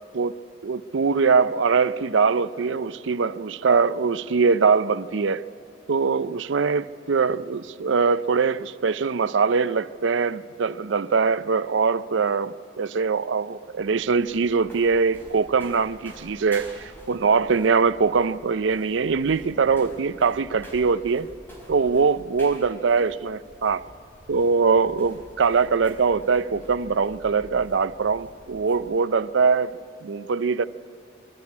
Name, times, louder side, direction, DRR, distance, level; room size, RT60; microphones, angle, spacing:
voice 1, 0.6-5.4 5.9-21.3 21.7-23.8 24.3-30.7, right 5 dB, 75° right, 0.5 m, -22 dB
sound 1, 13.6-28.9, equal, 10° left, 4.2 m, -48 dB
24.5 x 12.5 x 8.5 m
head